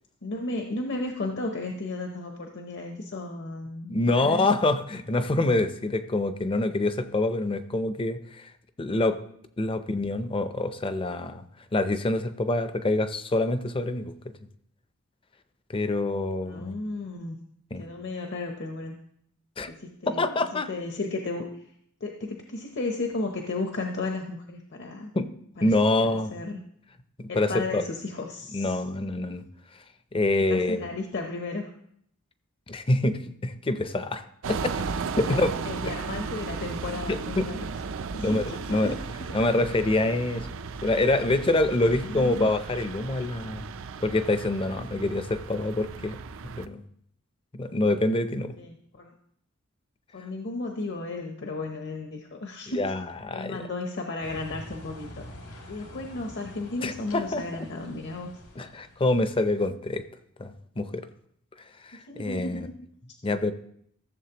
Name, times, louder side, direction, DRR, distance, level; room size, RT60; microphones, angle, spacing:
voice 1, 0.2-4.5 16.5-17.4 17.7-19.0 19.7-20.3 20.7-21.7 22.0-25.1 25.6-25.7 26.3-26.6 27.3-28.8 30.5-31.7 35.1-37.7 38.1-39.1 41.8-42.5 48.6-49.1 50.1-52.9 53.3-58.3 62.1-62.9, left 2 dB, 55° left, 3 dB, 0.8 m, -34 dB
voice 2, 3.9-8.5 8.8-9.2 9.6-11.4 11.7-14.1 15.7-16.7 17.7-17.9 19.6-19.7 20.1-20.7 25.1-25.3 25.6-26.3 27.2-27.8 28.5-29.4 30.1-30.9 32.7-34.7 35.2-35.5 37.1-37.5 38.2-38.9 39.3-40.5 40.8-43.7 44.0-46.2 46.4-46.8 47.5-48.6 52.8-53.6 56.8-57.7 58.6-60.1 60.4-61.1 61.8-62.7 63.2-63.5, left 2 dB, 25° left, 10 dB, 0.5 m, -26 dB
sound 1, 34.4-46.7, right 5 dB, 60° right, 0.5 m, -35 dB
sound 2, 54.2-59.2, left 1 dB, 75° left, 1.6 m, -45 dB
14.5 x 7.3 x 2.9 m, 0.68 s
head